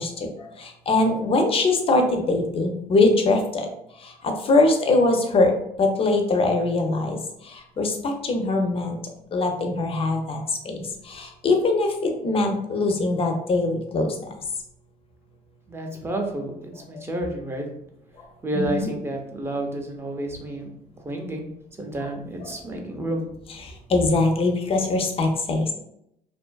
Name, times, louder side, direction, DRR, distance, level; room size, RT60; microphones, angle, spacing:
voice 1, 0.0-3.7 4.0-5.5 5.8-7.2 7.5-9.0 9.3-10.8 11.0-14.1 18.5-18.9 22.4-22.5 23.6-25.7, left 2 dB, 35° left, 4 dB, 0.5 m, -22 dB
voice 2, 15.7-17.7 18.4-20.7 21.0-21.5 21.8-23.3, right 1 dB, 15° right, 2 dB, 0.5 m, -30 dB
2.6 x 2.3 x 2.2 m, 0.76 s
cardioid pair, 110°, 17 cm